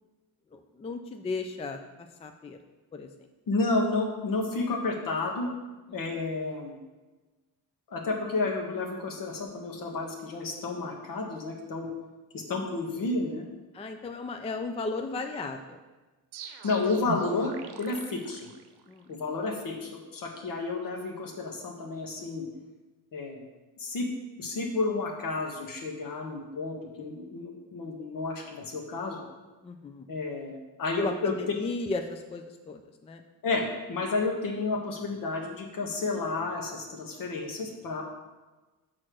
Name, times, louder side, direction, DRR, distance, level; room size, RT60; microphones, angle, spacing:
voice 1, 0.5-1.8 2.2-2.6 2.9-3.1 5.9-6.0 13.7-15.8 18.9-19.2 29.6-30.1 31.0-33.2, left 3 dB, 15° left, 6 dB, 0.3 m, -35 dB
voice 2, 3.5-5.5 5.9-6.8 7.9-11.9 12.3-13.5 16.6-18.4 19.1-22.5 23.1-23.5 23.8-24.1 24.4-29.2 30.1-31.3 33.4-38.0, left 3 dB, 60° left, 1 dB, 1.4 m, -31 dB
sound 1, 16.3-19.1, right 5 dB, 90° right, 0.8 m, -41 dB
6.4 x 4.3 x 6.2 m, 1.2 s
cardioid pair, 125°, 38 cm